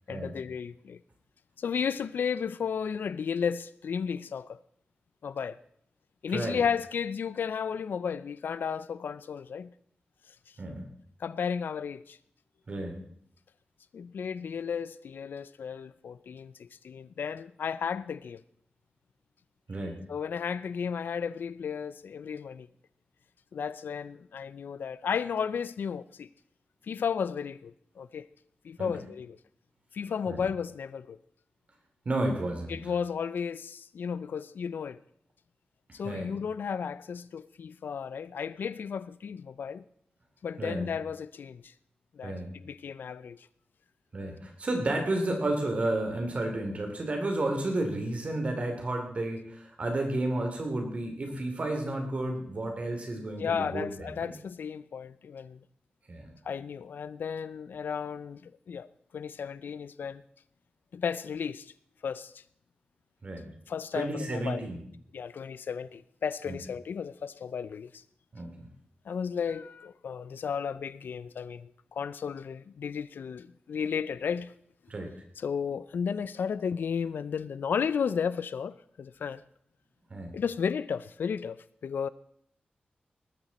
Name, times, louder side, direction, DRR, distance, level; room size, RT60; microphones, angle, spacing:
voice 1, 0.1-1.0 1.6-4.6 5.2-5.6 6.2-9.7 10.3-10.6 11.2-12.2 13.9-18.4 20.1-22.7 23.5-26.3 26.8-28.3 28.6-29.4 29.9-31.2 32.7-35.0 35.9-39.8 40.4-41.7 42.1-43.5 53.4-55.6 56.4-58.9 59.1-60.2 60.9-61.7 62.0-62.4 63.7-64.6 65.1-68.0 69.1-74.5 75.4-79.4 80.3-82.1, left 6 dB, 85° left, 0.5 m, -34 dB
voice 2, 6.3-6.6 10.6-10.8 12.7-13.0 19.7-20.0 28.8-28.9 30.3-30.4 32.0-32.8 36.0-36.3 40.6-40.9 42.2-42.5 44.1-54.3 56.1-56.3 63.2-63.5 63.9-64.8 66.5-66.6 68.3-68.7 74.9-75.1 80.1-80.3, right 2 dB, 40° right, 3.1 m, -32 dB
19.5 x 13.5 x 4.2 m
wide cardioid pair, 160°, 3 cm